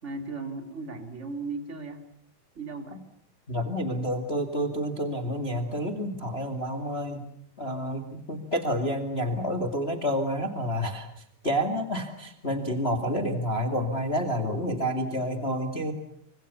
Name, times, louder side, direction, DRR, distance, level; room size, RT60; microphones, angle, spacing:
voice 1, 0.0-2.0 2.5-3.0, right 3 dB, 20° right, 7 dB, 2.3 m, -36 dB
voice 2, 3.5-7.2 7.6-11.1 11.4-15.9, equal, 30° left, 8 dB, 1.0 m, -29 dB
28.0 x 25.0 x 7.1 m, 0.67 s
omnidirectional pair, 5.5 m